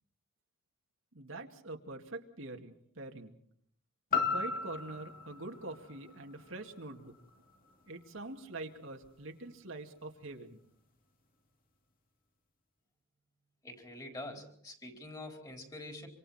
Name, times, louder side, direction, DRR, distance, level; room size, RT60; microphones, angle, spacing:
voice 1, 1.1-3.3 4.3-7.1 7.9-10.6, right 2 dB, 75° right, 3 dB, 2.3 m, -44 dB
sound 1, 4.1-8.2 8.6-8.7, left 5 dB, 45° left, 2.7 m, -37 dB
voice 2, 13.6-16.1, left 1 dB, 20° left, 3 dB, 4.2 m, -45 dB
26.5 x 25.5 x 4.3 m, 0.63 s
head